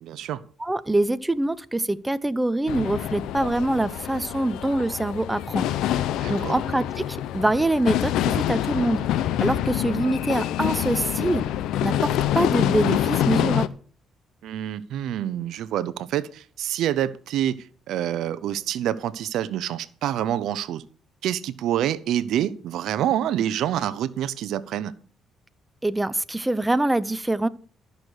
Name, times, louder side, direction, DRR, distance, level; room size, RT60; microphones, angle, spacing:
voice 1, 0.0-0.4 6.2-6.6 14.4-17.6 17.9-20.8 21.2-24.9, right 11 dB, 80° right, 16 dB, 0.7 m, -27 dB
voice 2, 0.6-5.7 6.3-9.0 9.4-11.4 11.8-13.7 25.8-27.5, right 2 dB, 10° right, 14 dB, 0.7 m, -24 dB
sound 1, 2.7-13.7, left 11 dB, 85° left, 0.6 m, -26 dB
13.5 x 6.5 x 6.3 m, 0.43 s
cardioid pair, 95°, 0 cm